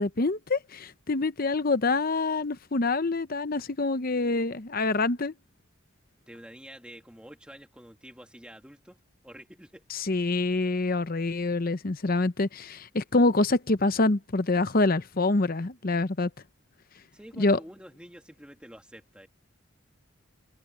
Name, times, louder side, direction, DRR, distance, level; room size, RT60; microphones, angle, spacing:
voice 1, 0.0-5.3 9.9-16.3 17.4-17.6, left 3 dB, 45° left, 0.8 m, -26 dB
voice 2, 6.3-9.8 17.1-19.3, equal, 5° right, 2.3 m, -48 dB
head